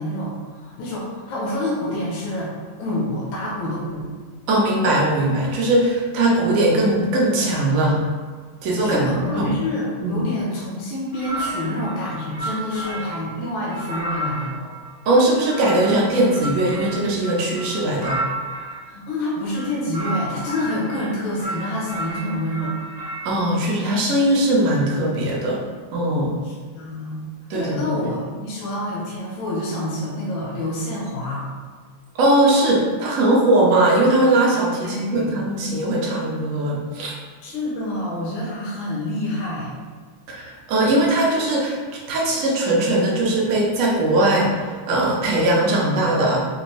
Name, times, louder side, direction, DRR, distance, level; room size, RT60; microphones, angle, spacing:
voice 1, 0.0-4.0 8.8-14.6 18.8-22.8 26.4-27.2 27.5-31.5 34.8-35.4 37.4-39.7, left 1 dB, 75° left, -5 dB, 1.4 m, -27 dB
voice 2, 4.5-8.0 8.6-9.5 10.0-10.2 15.1-18.2 23.2-25.6 25.9-26.4 27.5-28.0 32.1-37.1 40.3-41.8 42.1-46.5, right 1 dB, 70° right, -3 dB, 0.8 m, -20 dB
sound 1, 11.1-13.2 13.7-18.8 19.5-21.1 21.4-23.3, right 1 dB, 15° right, 0.7 m, -32 dB
4.3 x 2.6 x 2.9 m, 1.5 s
omnidirectional pair, 2.3 m